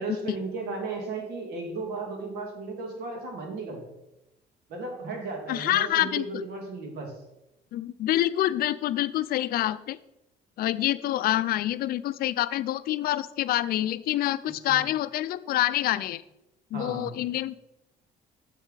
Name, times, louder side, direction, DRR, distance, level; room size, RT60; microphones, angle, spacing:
voice 1, 0.0-3.8 4.7-7.1 14.5-14.8 16.7-17.2, right 3 dB, 75° right, 2 dB, 2.1 m, -35 dB
voice 2, 5.5-6.2 7.7-10.0 10.6-16.2 16.7-17.5, left 13 dB, 65° left, 15 dB, 0.4 m, -26 dB
7.3 x 7.1 x 4.0 m, 0.91 s
cardioid pair, 110°, 17 cm